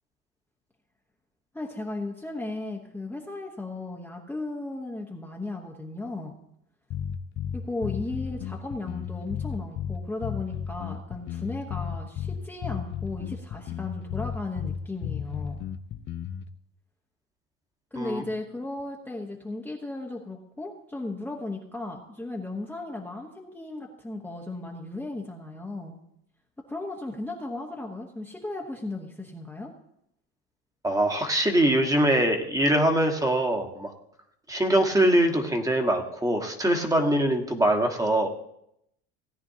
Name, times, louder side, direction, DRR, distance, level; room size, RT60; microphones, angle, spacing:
voice 1, 1.5-6.4 7.5-15.6 17.9-26.0 26.7-29.7, left 2 dB, 5° left, -2 dB, 1.1 m, -35 dB
sound 1, 6.9-16.5, left 8 dB, 35° left, 0.5 m, -33 dB
voice 2, 30.8-33.9 34.5-38.3, right 1 dB, 10° right, 4 dB, 1.5 m, -23 dB
17.5 x 9.4 x 2.8 m, 0.76 s
supercardioid pair, 115°, 31 cm